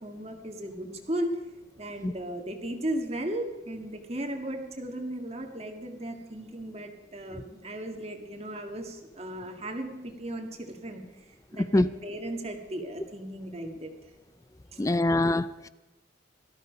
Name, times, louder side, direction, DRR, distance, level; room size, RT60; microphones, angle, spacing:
voice 1, 0.0-1.4 1.8-13.9 14.7-14.9, right 1 dB, 30° right, 1.8 m, -36 dB
voice 2, 14.8-15.7, left 1 dB, 15° left, 0.4 m, -24 dB
18.5 x 13.5 x 5.2 m
head